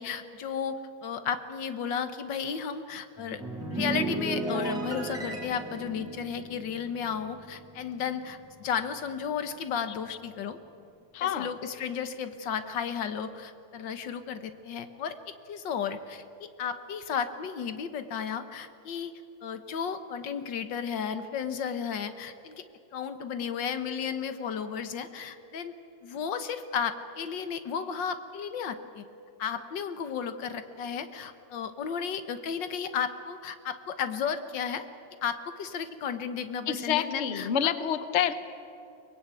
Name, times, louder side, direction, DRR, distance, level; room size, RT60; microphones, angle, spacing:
voice 1, 0.0-3.4 3.7-10.6 11.2-22.5 22.9-25.8 26.0-29.0 29.4-34.9 35.2-37.7, left 7 dB, 90° left, 10 dB, 1.9 m, -34 dB
sound 1, 3.2-7.8 8.1-8.4, right 2 dB, ahead, 5.5 m, -35 dB
voice 2, 11.1-11.5 36.7-38.3, left 9 dB, 45° left, 12 dB, 1.1 m, -27 dB
23.0 x 20.0 x 9.1 m, 2.5 s
omnidirectional pair, 1.9 m